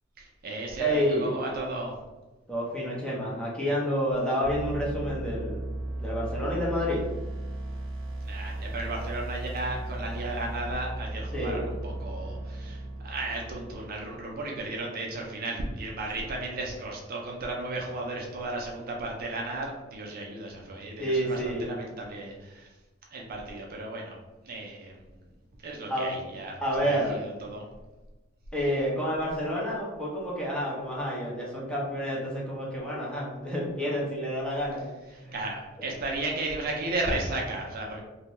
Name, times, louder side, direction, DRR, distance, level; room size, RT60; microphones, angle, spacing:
voice 1, 0.2-1.9 8.2-22.7 23.1-24.2 24.4-25.0 25.6-27.6 35.3-38.0, right 2 dB, 45° right, -1 dB, 0.4 m, -34 dB
voice 2, 0.8-1.3 2.5-5.6 6.0-7.0 11.3-11.7 21.0-21.7 25.9-26.1 26.6-27.2 28.5-34.8 35.1-35.4 35.8-35.9, equal, 5° left, -6 dB, 0.7 m, -29 dB
sound 1, 4.4-14.2, right 1 dB, 75° right, 0.8 m, -36 dB
2.6 x 2.1 x 3.0 m, 1.1 s
head